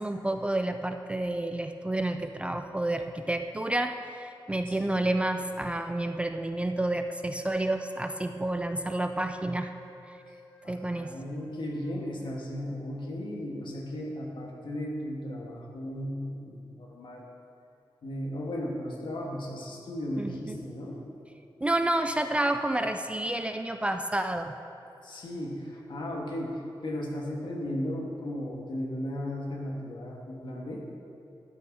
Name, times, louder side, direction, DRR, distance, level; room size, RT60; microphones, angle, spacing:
voice 1, 0.0-9.7 10.0-10.2 10.7-11.2 20.2-20.6 21.6-24.6, right 1 dB, 15° right, 7 dB, 0.3 m, -30 dB
voice 2, 4.7-5.0 10.3-10.4 10.6-17.3 18.0-21.0 25.0-30.8, left 1 dB, 65° left, -1 dB, 1.6 m, -36 dB
sound 1, 7.4-13.5, left 1 dB, 10° left, 0.9 m, -52 dB
12.0 x 6.3 x 4.8 m, 2.6 s
wide cardioid pair, 135°, 9 cm